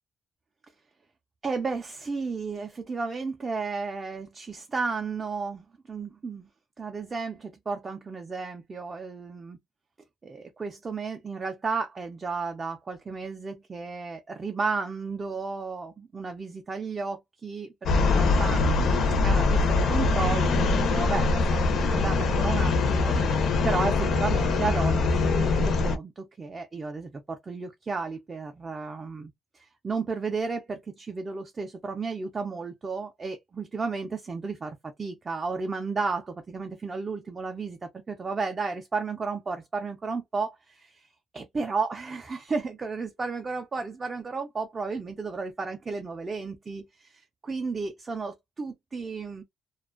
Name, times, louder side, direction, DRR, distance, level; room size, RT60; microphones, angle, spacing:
voice 1, 1.4-6.5 6.8-9.6 10.2-18.6 19.2-41.1 41.3-49.4, right 4 dB, 20° right, 0.3 m, -33 dB
sound 1, 17.9-26.0, left 3 dB, 55° left, 0.4 m, -23 dB
2.4 x 2.2 x 2.3 m
cardioid pair, 180°, 0 cm